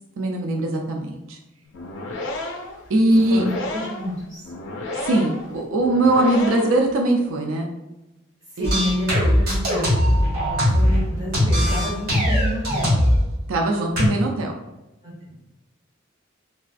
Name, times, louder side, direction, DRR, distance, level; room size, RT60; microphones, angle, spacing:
voice 1, 0.2-1.4 2.9-3.4 5.0-7.7 8.6-8.7 13.5-14.5, right 1 dB, 80° right, 2 dB, 0.4 m, -21 dB
sound 1, 1.7-6.9, left 2 dB, 60° left, 0.4 m, -32 dB
voice 2, 3.1-4.5 8.5-13.0 15.0-15.3, equal, 15° right, -8 dB, 1.4 m, -30 dB
sound 2, 8.6-11.0 11.3-13.2 14.0-14.1, equal, 50° right, 1.2 m, -19 dB
3.4 x 2.3 x 2.4 m, 0.99 s
head